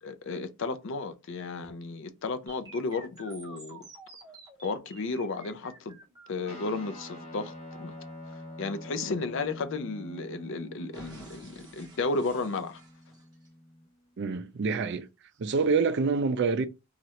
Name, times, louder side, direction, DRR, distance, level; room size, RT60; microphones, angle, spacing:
voice 1, 0.0-3.8 4.6-6.0 6.3-7.9 8.6-12.8, left 3 dB, 55° left, 0.5 m, -33 dB
sound 1, 2.5-10.4 10.9-13.5, right 2 dB, 20° right, 0.8 m, -52 dB
Guitar, 6.4-14.1, left 1 dB, 30° left, 1.3 m, -46 dB
voice 2, 14.2-15.1 15.4-16.7, right 4 dB, 50° right, 0.4 m, -26 dB
3.1 x 2.4 x 2.8 m
head